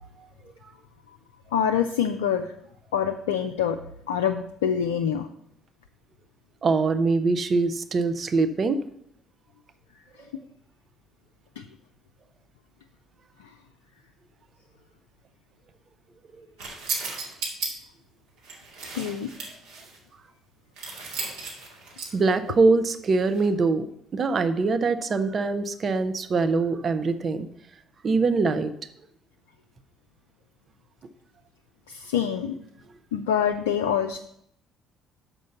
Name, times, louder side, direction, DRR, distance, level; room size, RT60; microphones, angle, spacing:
voice 1, 1.5-2.5 2.9-3.8 4.1-5.3 11.6-11.7 19.0-19.3 31.9-32.5 33.1-34.2, left 8 dB, 75° left, 6 dB, 0.4 m, -25 dB
voice 2, 6.6-8.8 22.1-23.8 24.1-27.5 28.0-28.7, right 4 dB, 40° right, 10 dB, 0.8 m, -23 dB
sound 1, 16.6-17.7 18.4-20.0 20.8-22.3 23.2-23.5, right 4 dB, 65° right, 2.2 m, -35 dB
6.3 x 5.3 x 7.0 m, 0.70 s
figure-of-eight pair, 50°, 0 cm